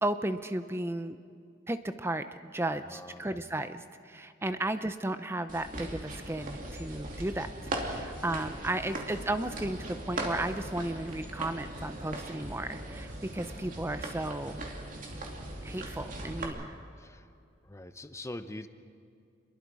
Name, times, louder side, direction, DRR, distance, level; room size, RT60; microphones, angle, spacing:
voice 1, 0.0-1.2 1.7-14.7 15.6-16.7, right 1 dB, 15° right, 10 dB, 0.6 m, -34 dB
voice 2, 2.7-3.4 4.5-4.6 17.0-17.3 17.6-18.7, left 1 dB, 15° left, 10 dB, 0.8 m, -44 dB
sound 1, 5.5-16.4, right 2 dB, 45° right, 2.7 m, -40 dB
sound 2, 5.7-16.4, right 1 dB, 80° right, 6.3 m, -46 dB
28.0 x 22.0 x 4.8 m, 2.4 s
head